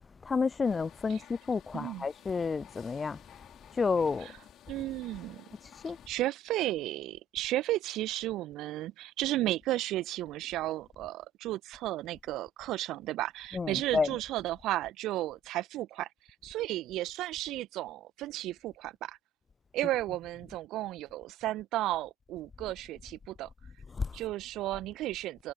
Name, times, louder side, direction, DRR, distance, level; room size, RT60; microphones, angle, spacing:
voice 1, 0.2-3.2 3.7-4.3 5.8-6.0 13.5-14.1 24.0-24.1, left 5 dB, 25° left, 0.3 m, -30 dB
sound 1, 0.6-6.1, left 11 dB, 50° left, 4.2 m, -55 dB
voice 2, 1.7-2.0 4.2-4.3 4.7-5.5 6.1-16.1 16.4-19.2 19.7-23.5 24.1-25.5, right 15 dB, 55° right, 1.4 m, -34 dB
figure-of-eight pair, 60°, 0 cm